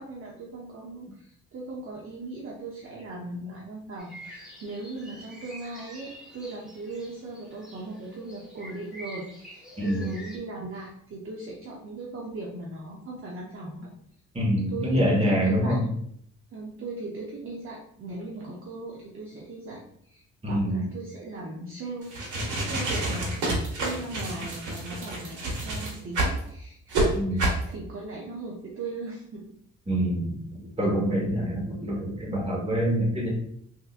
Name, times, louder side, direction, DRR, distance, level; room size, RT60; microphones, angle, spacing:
voice 1, 0.0-13.9 14.7-15.8 16.5-22.1 22.4-27.1 27.3-29.5, right 2 dB, 45° right, -3 dB, 0.7 m, -38 dB
sound 1, 4.0-10.4, equal, ahead, 1.2 m, -47 dB
voice 2, 9.8-10.1 14.3-15.8 20.4-20.9 27.1-27.5 29.9-30.4 30.8-33.3, equal, 20° right, -3 dB, 1.4 m, -25 dB
sound 2, 22.0-26.4 26.9-27.1 27.4-27.6, right 2 dB, 80° right, 1.2 m, -28 dB
3.5 x 2.8 x 2.5 m, 0.69 s
cardioid pair, 90°, 30 cm